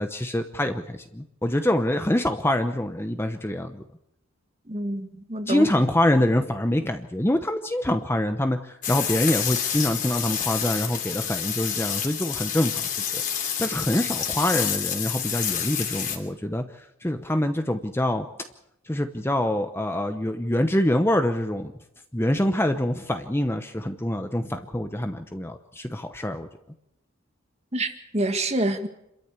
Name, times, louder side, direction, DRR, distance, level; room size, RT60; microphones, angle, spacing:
voice 1, 0.0-3.8 5.5-12.8 13.1-13.2 13.6-16.6 17.0-18.3 18.9-21.7 22.1-26.5, left 1 dB, 10° left, 0.9 m, -25 dB
voice 2, 4.7-5.7 27.7-28.9, right 1 dB, 30° right, 1.9 m, -27 dB
sound 1, 8.8-16.2, left 8 dB, 40° left, 3.3 m, -28 dB
27.5 x 13.5 x 8.4 m
head